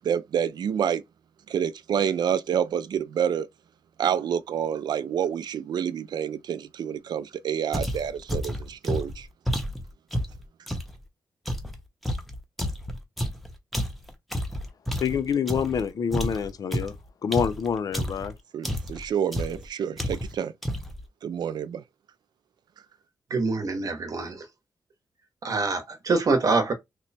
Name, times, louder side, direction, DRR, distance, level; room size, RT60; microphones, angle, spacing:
voice 1, 0.0-1.0 1.5-3.5 4.0-9.3 18.5-20.5 21.2-21.8, right 8 dB, 65° right, 0.4 m, -28 dB
sound 1, 7.7-11.0 11.5-15.8 16.1-18.3 18.6-19.1 19.3-19.7 20.0-20.4 20.6-21.0, equal, ahead, 0.7 m, -30 dB
voice 2, 15.0-16.9 17.2-18.3, left 7 dB, 55° left, 0.5 m, -27 dB
voice 3, 23.3-24.4 25.4-26.7, right 3 dB, 50° right, 0.9 m, -25 dB
3.0 x 2.1 x 4.1 m
wide cardioid pair, 125°, 8 cm